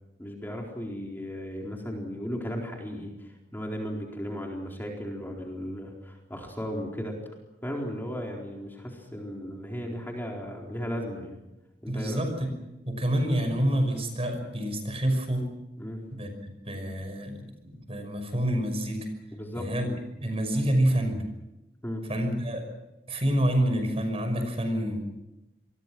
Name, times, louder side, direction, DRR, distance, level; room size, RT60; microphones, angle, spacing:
voice 1, 0.2-7.2 7.6-11.4 11.8-12.2 15.8-16.0 19.3-19.7 21.8-22.0, equal, 10° left, 0 dB, 4.2 m, -35 dB
voice 2, 11.9-12.3 12.8-15.4 16.1-19.1 19.6-19.9 20.2-21.2 22.1-22.6 23.1-25.1, right 1 dB, 35° right, 6 dB, 5.8 m, -27 dB
28.0 x 22.5 x 6.2 m, 0.95 s
head